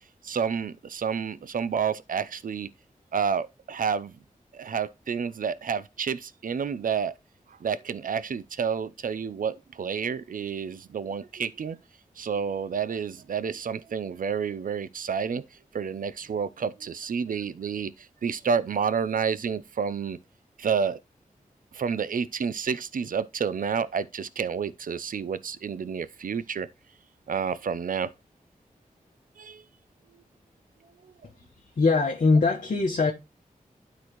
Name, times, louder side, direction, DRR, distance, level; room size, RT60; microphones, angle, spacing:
voice 1, 0.2-2.7 3.1-4.1 4.5-7.1 7.6-11.8 12.2-15.4 15.7-20.2 20.6-21.0 21.7-26.7 27.3-28.1 29.4-29.6 31.0-31.1, right 6 dB, 70° right, 0.6 m, -29 dB
voice 2, 31.8-33.1, left 3 dB, 65° left, 1.2 m, -21 dB
12.0 x 4.1 x 3.1 m
wide cardioid pair, 90°, 14 cm